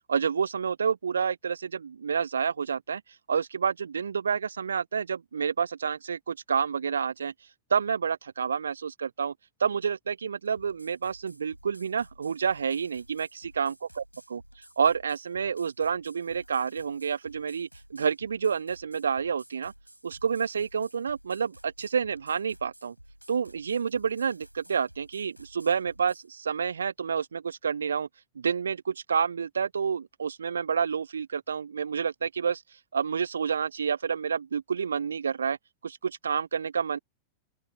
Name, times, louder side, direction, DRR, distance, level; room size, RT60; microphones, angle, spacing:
voice 1, 0.1-3.0 3.3-7.3 7.7-9.3 9.6-19.7 20.0-22.9 23.3-28.1 28.4-32.6 32.9-35.6 35.8-37.0, right 6 dB, 70° right, 0.6 m, -29 dB
sound 1, 10.4-26.3, equal, 90° right, 4.2 m, -54 dB
open air
figure-of-eight pair, 90°, 0 cm